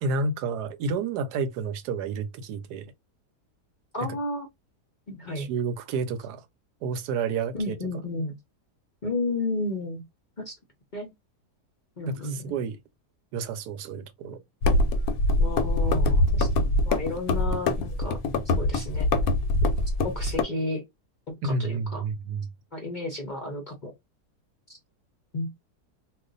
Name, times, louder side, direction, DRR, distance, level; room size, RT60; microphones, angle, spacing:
voice 1, 0.0-2.9 4.0-4.1 5.4-6.4 6.8-7.7 12.1-12.8 13.3-14.4 21.4-22.5, right 4 dB, 80° right, 1.1 m, -30 dB
voice 2, 3.9-4.5 5.1-5.5 7.5-8.3 9.0-10.0 10.4-10.5 10.9-11.1 12.0-12.5 15.4-16.5 16.9-18.2 18.6-19.0 20.0-20.8 21.4-22.0 22.7-23.9 25.3-25.5, left 2 dB, 45° left, 0.6 m, -32 dB
sound 1, 14.6-20.4, left 2 dB, 70° left, 1.0 m, -23 dB
2.5 x 2.3 x 3.8 m
omnidirectional pair, 1.7 m